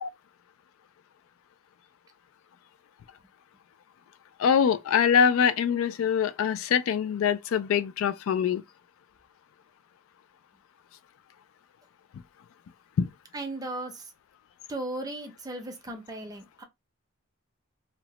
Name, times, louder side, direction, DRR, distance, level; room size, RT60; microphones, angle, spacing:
voice 1, 4.4-8.6 13.0-13.1, left 7 dB, 75° left, 0.3 m, -24 dB
voice 2, 13.3-14.1 14.7-16.6, right 2 dB, 20° right, 0.5 m, -36 dB
2.8 x 2.1 x 2.8 m
head